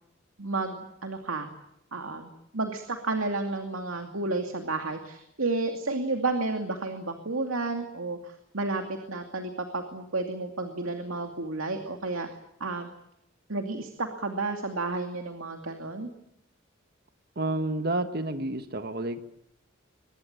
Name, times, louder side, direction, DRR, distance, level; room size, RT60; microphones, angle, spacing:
voice 1, 0.4-1.5 1.9-12.3 12.6-12.9 13.5-16.1, right 3 dB, 90° right, 5 dB, 2.5 m, -31 dB
voice 2, 17.3-19.2, right 2 dB, 50° right, 9 dB, 1.4 m, -30 dB
24.0 x 21.0 x 8.9 m, 0.78 s
head